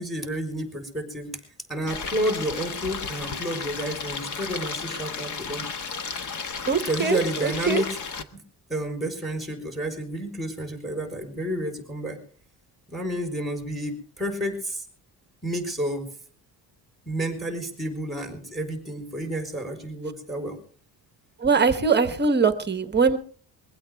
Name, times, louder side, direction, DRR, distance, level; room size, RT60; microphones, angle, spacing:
voice 1, 0.0-1.3 1.7-5.7 6.8-8.0 8.3-8.4 8.7-12.2 12.9-14.8 15.4-16.1 17.1-20.6, right 1 dB, ahead, 4 dB, 4.2 m, -30 dB
Stream, 1.9-8.2, left 5 dB, 45° left, 1.5 m, -33 dB
voice 2, 6.7-7.8 21.4-23.2, right 5 dB, 25° right, 10 dB, 1.1 m, -22 dB
22.5 x 16.0 x 3.5 m, 0.43 s
cardioid pair, 155°, 40 cm